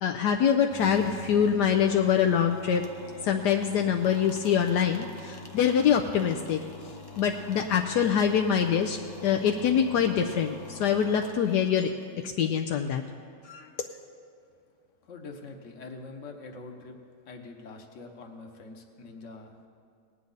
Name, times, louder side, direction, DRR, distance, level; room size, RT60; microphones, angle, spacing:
voice 1, 0.0-2.8 3.2-6.6 7.2-11.9 12.4-13.0 13.4-13.7, left 8 dB, 75° left, 4 dB, 1.2 m, -24 dB
sound 1, 0.7-12.1, left 4 dB, 30° left, 0.4 m, -46 dB
voice 2, 15.0-17.0 17.3-19.7, left 3 dB, 50° left, 3 dB, 1.4 m, -44 dB
19.0 x 9.6 x 4.0 m, 2.4 s
omnidirectional pair, 1.9 m